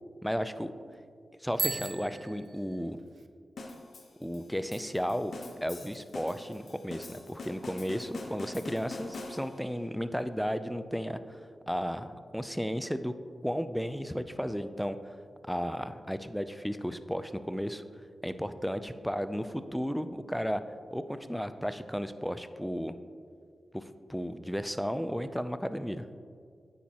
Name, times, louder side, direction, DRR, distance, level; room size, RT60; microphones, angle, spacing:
voice 1, 0.2-0.7 1.4-3.0 4.2-5.3 5.6-11.4 11.7-13.1 13.4-15.0 15.5-17.8 18.2-20.6 20.9-23.0 23.7-23.8 24.1-26.1, equal, ahead, 11 dB, 0.4 m, -34 dB
Bicycle bell, 1.5-3.3, right 5 dB, 75° right, 0.4 m, -37 dB
sound 1, 3.6-9.8, left 2 dB, 70° left, 1.0 m, -44 dB
9.3 x 7.1 x 2.9 m, 2.1 s
cardioid pair, 60°, 0 cm